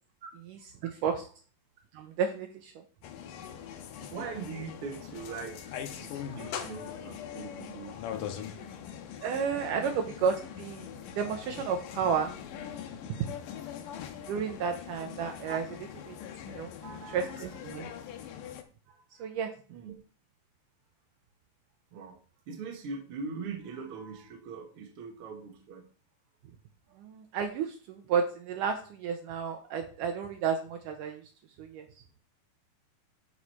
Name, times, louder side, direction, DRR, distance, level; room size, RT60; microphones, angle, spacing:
voice 1, 1.9-2.7 9.2-10.9 11.2-12.3 13.1-13.3 14.3-16.2 16.5-17.9 19.2-19.5 27.0-31.2 31.6-31.8, right 6 dB, 75° right, 5 dB, 2.3 m, -32 dB
sound 1, 3.0-18.6, left 9 dB, 75° left, 2.3 m, -42 dB
voice 2, 4.0-8.8 9.8-10.0 13.8-13.9 14.9-15.0 16.8-17.3 18.9-20.0 21.9-22.2 22.5-25.9 26.9-27.0, right 5 dB, 55° right, 2 dB, 1.6 m, -42 dB
12.5 x 4.9 x 4.3 m, 0.41 s
omnidirectional pair, 4.1 m